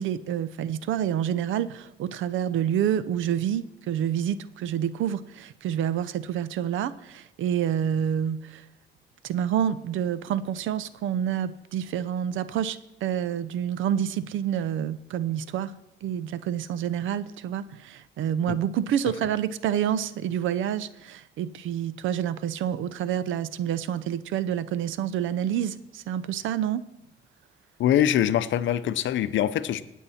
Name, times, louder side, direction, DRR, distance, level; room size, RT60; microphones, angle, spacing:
voice 1, 0.0-8.6 9.2-15.7 16.0-26.8, right 9 dB, 80° right, 15 dB, 0.7 m, -28 dB
voice 2, 27.8-29.8, left 11 dB, 70° left, 14 dB, 0.7 m, -23 dB
18.5 x 7.3 x 4.3 m, 0.91 s
cardioid pair, 90°, 20 cm